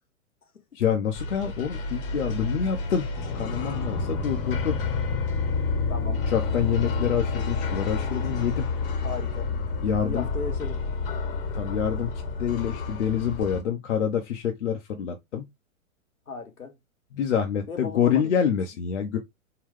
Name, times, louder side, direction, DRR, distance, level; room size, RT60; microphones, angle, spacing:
voice 1, 0.7-3.1 3.3-4.8 6.1-8.7 9.8-10.3 11.5-12.1 12.4-15.5 17.1-19.2, left 8 dB, 60° left, 0.7 m, -27 dB
sound 1, 1.1-13.6, left 4 dB, 40° left, 1.0 m, -29 dB
voice 2, 5.9-6.2 9.0-9.5 10.0-10.8 16.3-16.7 17.7-18.3, left 5 dB, 85° left, 1.0 m, -36 dB
3.7 x 2.2 x 3.4 m
figure-of-eight pair, 110°, 42 cm